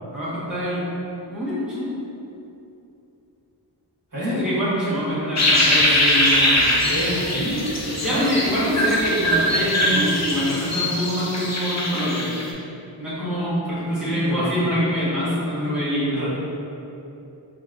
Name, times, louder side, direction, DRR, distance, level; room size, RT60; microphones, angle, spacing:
voice 1, 0.1-0.9 1.3-1.9 4.4-6.7 8.0-12.3 13.0-16.3, equal, ahead, -11 dB, 1.4 m, -24 dB
voice 2, 4.1-4.4 6.8-8.2 14.0-14.7 15.6-16.3, equal, 45° right, -11 dB, 1.4 m, -28 dB
sound 1, 5.4-12.5, left 1 dB, 35° left, 0.6 m, -22 dB
4.2 x 4.1 x 2.6 m, 2.8 s
wide cardioid pair, 55°, 45 cm